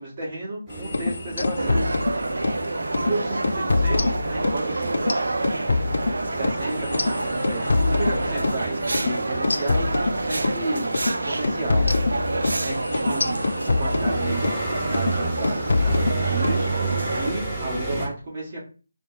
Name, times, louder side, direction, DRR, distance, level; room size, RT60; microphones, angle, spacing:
voice 1, 0.0-1.9 2.6-5.2 6.3-6.8 7.4-10.9 11.2-11.9 12.6-13.4 13.7-14.4 14.9-16.7 17.2-18.6, right 2 dB, 35° right, -4 dB, 1.8 m, -32 dB
sound 1, 0.7-18.1, right 2 dB, 10° right, 1.3 m, -32 dB
sound 2, 0.8-2.6 2.9-3.1 3.4-4.6 4.9-8.6 8.9-9.1 9.4-10.6 10.9-11.1 11.4-14.6 14.9-15.2 15.4-16.6, left 3 dB, 65° left, 0.3 m, -25 dB
sound 3, 1.6-17.3, right 2 dB, 75° right, 0.4 m, -28 dB
4.2 x 2.3 x 4.2 m, 0.36 s
figure-of-eight pair, 160°, 0 cm